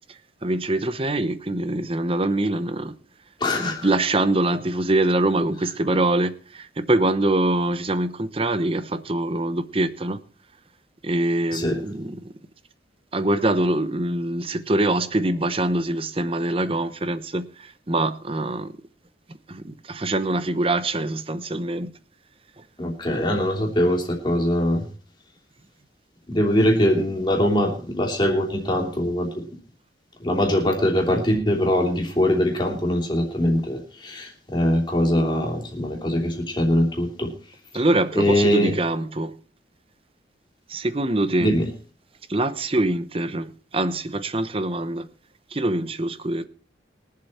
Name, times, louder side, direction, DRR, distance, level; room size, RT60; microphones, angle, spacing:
voice 1, 0.4-2.9 3.6-10.2 11.0-12.3 13.1-18.8 19.5-21.9 22.6-22.7 37.7-39.3 40.7-41.5 42.3-45.1 45.5-46.5, right 2 dB, 30° right, 0.8 m, -24 dB
voice 2, 3.4-3.9 11.5-11.8 22.8-24.8 26.3-29.4 30.2-37.3 37.7-37.8 38.1-38.7 41.4-41.7, equal, 25° left, 3.1 m, -22 dB
22.5 x 7.6 x 4.3 m
head